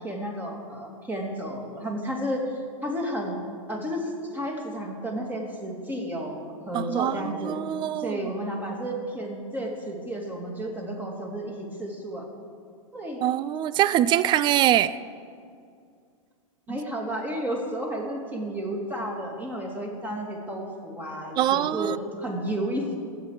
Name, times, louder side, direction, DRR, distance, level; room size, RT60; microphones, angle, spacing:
voice 1, 0.0-3.4 3.7-7.6 8.0-12.2 12.9-13.2 16.7-22.9, equal, 10° right, 0 dB, 2.6 m, -32 dB
voice 2, 6.7-8.2 13.2-15.0 16.7-16.8 21.4-22.0, right 12 dB, 25° right, 17 dB, 0.4 m, -23 dB
23.0 x 8.4 x 4.9 m, 2.3 s
hypercardioid pair, 125°, 18 cm